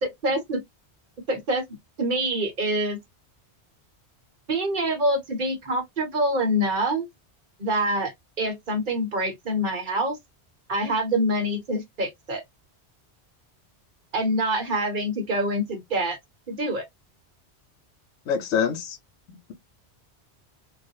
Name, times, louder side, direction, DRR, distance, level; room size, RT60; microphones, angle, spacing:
voice 1, 0.0-0.6 1.3-1.6 2.0-3.0 4.5-7.1 7.6-8.1 8.4-10.2 10.7-12.4 14.1-16.2 16.5-16.8, right 1 dB, 50° right, 0.9 m, -25 dB
voice 2, 18.3-19.0 19.3-19.5, left 7 dB, 90° left, 0.9 m, -26 dB
2.4 x 2.1 x 2.7 m
omnidirectional pair, 1.1 m